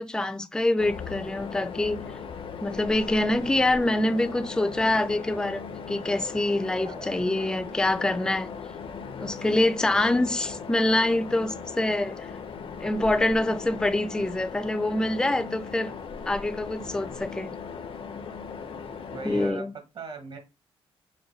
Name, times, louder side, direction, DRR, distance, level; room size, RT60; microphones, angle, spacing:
voice 1, 0.0-2.1 2.6-8.5 9.2-12.3 12.8-15.9 16.3-17.5 19.2-19.7, left 1 dB, 5° left, 0.4 m, -25 dB
sound 1, 0.8-19.5, left 5 dB, 60° left, 0.7 m, -38 dB
voice 2, 6.8-7.5 19.1-20.4, right 4 dB, 60° right, 1.1 m, -41 dB
5.4 x 2.2 x 4.0 m
cardioid pair, 95°, 10 cm